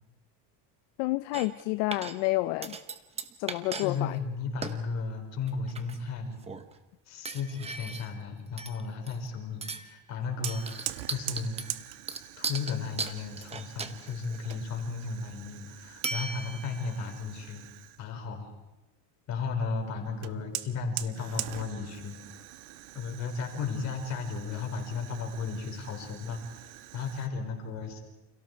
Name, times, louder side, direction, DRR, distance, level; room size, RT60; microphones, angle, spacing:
voice 1, 1.0-2.8 3.4-4.2, left 20 dB, 65° left, 0.8 m, -29 dB
sound 1, 1.3-1.6 1.9-2.3 2.6-3.9 4.1-4.2 4.6-4.8 5.5-6.1 6.4-6.7 7.3-8.2 8.6-9.3 9.6-10.0 10.4-14.5 16.0-16.9, right 4 dB, 15° right, 0.9 m, -37 dB
voice 2, 3.8-6.4 7.1-11.7 12.4-17.7 18.0-18.5 19.3-22.2 22.9-28.0, left 4 dB, 35° left, 4.6 m, -35 dB
Fire, 10.4-18.1 20.2-27.3, right 16 dB, 65° right, 1.3 m, -43 dB
30.0 x 28.5 x 4.6 m
cardioid pair, 180°, 49 cm